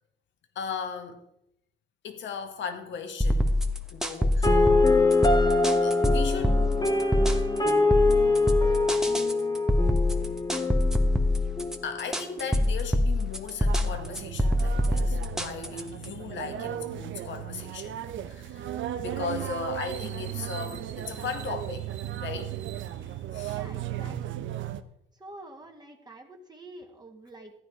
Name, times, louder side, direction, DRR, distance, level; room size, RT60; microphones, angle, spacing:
voice 1, 0.6-1.2 2.0-3.6 3.9-4.8 5.8-6.7 9.2-9.3 11.8-22.5 23.0-23.6, left 6 dB, 70° left, 1.7 m, -37 dB
sound 1, 3.2-16.1, left 1 dB, ahead, 1.2 m, -25 dB
sound 2, 4.4-12.4, left 3 dB, 20° left, 1.6 m, -24 dB
sound 3, 13.7-24.8, right 11 dB, 75° right, 0.8 m, -36 dB
voice 2, 23.5-24.4 25.2-27.5, right 2 dB, 20° right, 1.9 m, -47 dB
14.5 x 9.1 x 4.8 m
cardioid pair, 90°, 20 cm